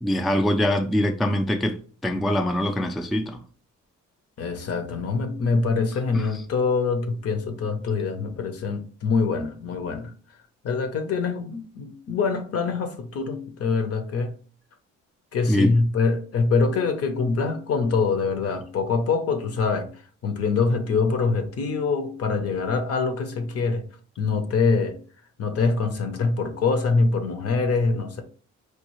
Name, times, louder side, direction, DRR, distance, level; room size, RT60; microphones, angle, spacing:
voice 1, 0.0-3.4 6.1-6.3 15.5-15.8, equal, ahead, 0.3 m, -24 dB
voice 2, 4.4-10.1 10.6-14.3 15.3-19.9 20.2-23.8 24.2-25.0 25.4-28.2, left 4 dB, 50° left, 0.7 m, -24 dB
4.6 x 2.3 x 3.0 m
cardioid pair, 90°, 30 cm